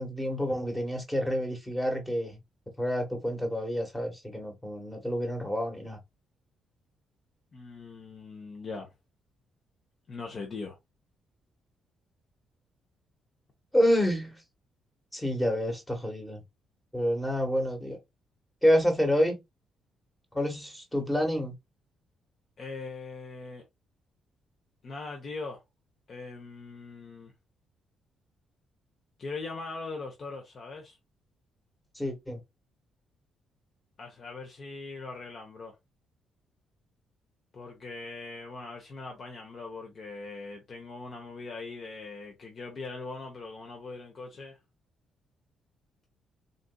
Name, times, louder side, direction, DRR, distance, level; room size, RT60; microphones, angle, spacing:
voice 1, 0.0-2.4 2.8-6.0 13.7-14.4 15.1-16.4 16.9-18.0 18.6-19.4 20.3-21.5 31.9-32.4, equal, 10° left, 1.4 m, -28 dB
voice 2, 7.5-8.9 10.1-10.8 22.6-23.6 24.8-25.6 26.1-27.3 29.2-31.0 34.0-35.7 37.5-44.6, left 3 dB, 45° left, 0.9 m, -41 dB
3.9 x 2.5 x 2.2 m
cardioid pair, 90°, 0 cm